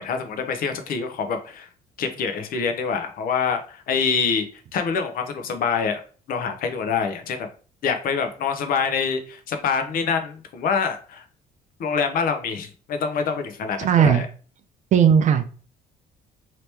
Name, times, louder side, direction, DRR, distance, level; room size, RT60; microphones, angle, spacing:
voice 1, 0.0-1.7 2.0-6.0 6.3-7.5 7.8-11.3 11.8-14.3, left 6 dB, 60° left, 7 dB, 0.7 m, -25 dB
voice 2, 13.8-14.2 14.9-15.5, right 8 dB, 45° right, 9 dB, 0.4 m, -17 dB
3.0 x 2.9 x 3.2 m, 0.40 s
cardioid pair, 110°, 17 cm